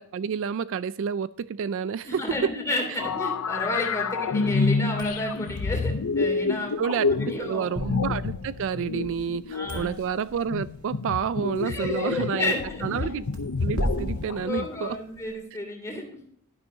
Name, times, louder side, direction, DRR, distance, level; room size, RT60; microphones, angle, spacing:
voice 1, 0.0-2.5 2.9-3.0 6.8-7.1 7.4-12.5 12.8-13.2 13.6-15.0, right 7 dB, 60° right, 0.3 m, -29 dB
voice 2, 2.0-6.7 7.2-7.7 9.5-9.9 11.6-13.2 14.4-16.2, left 2 dB, 15° left, 2.9 m, -32 dB
sound 1, 3.0-14.8, left 4 dB, 80° left, 0.6 m, -28 dB
sound 2, 4.8-15.3, equal, 75° right, 2.0 m, -39 dB
sound 3, 7.8-10.3, equal, 35° right, 5.2 m, -40 dB
12.0 x 10.5 x 2.7 m
head